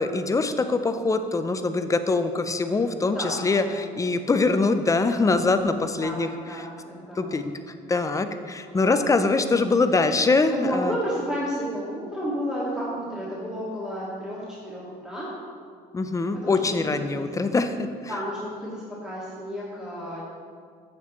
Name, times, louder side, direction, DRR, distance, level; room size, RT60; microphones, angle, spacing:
voice 1, 0.0-6.3 7.2-7.4 7.9-10.9 15.9-17.9, left 3 dB, 20° left, 9 dB, 0.5 m, -23 dB
voice 2, 3.0-3.8 6.0-7.4 8.7-9.0 10.5-15.3 16.3-17.3 18.1-20.2, equal, 5° right, -8 dB, 1.9 m, -32 dB
9.3 x 7.5 x 3.1 m, 2.1 s
cardioid pair, 110°, 17 cm